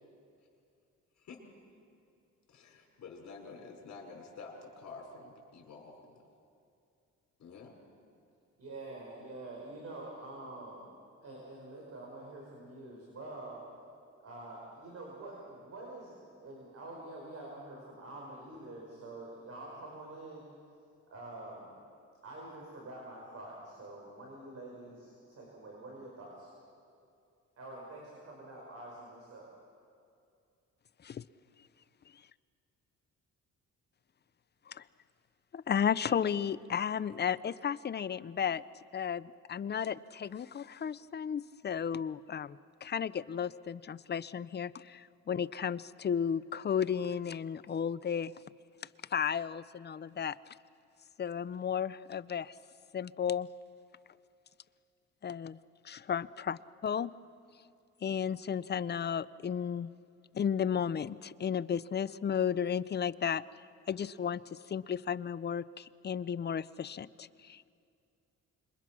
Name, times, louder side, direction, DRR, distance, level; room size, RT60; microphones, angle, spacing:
voice 1, 2.5-6.1 7.4-7.7, left 4 dB, 65° left, -1 dB, 5.2 m, -49 dB
voice 2, 8.6-10.9 11.2-13.6 14.2-20.4 21.1-21.8 22.2-26.5 27.6-29.5, right 2 dB, 55° right, -2 dB, 5.2 m, -46 dB
voice 3, 35.5-38.6 38.9-48.3 49.1-50.4 51.2-52.5 52.9-53.5 55.2-55.6 55.8-57.1 58.0-59.9 60.3-63.4 63.9-67.7, left 8 dB, 35° left, 17 dB, 0.6 m, -34 dB
26.5 x 22.5 x 6.1 m, 2.5 s
cardioid pair, 90°, 30 cm